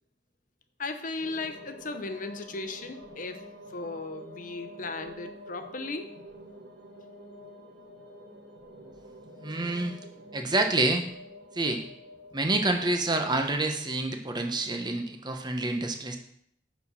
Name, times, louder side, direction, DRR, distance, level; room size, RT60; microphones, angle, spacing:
voice 1, 0.8-3.4 3.7-6.2, left 3 dB, 50° left, 8 dB, 0.8 m, -36 dB
sound 1, 1.2-13.7, equal, 70° right, 1.3 m, -48 dB
voice 2, 9.4-9.9 10.3-11.1 11.5-11.8 12.3-16.2, right 2 dB, 25° right, 5 dB, 0.9 m, -27 dB
9.2 x 4.2 x 5.6 m, 0.67 s
head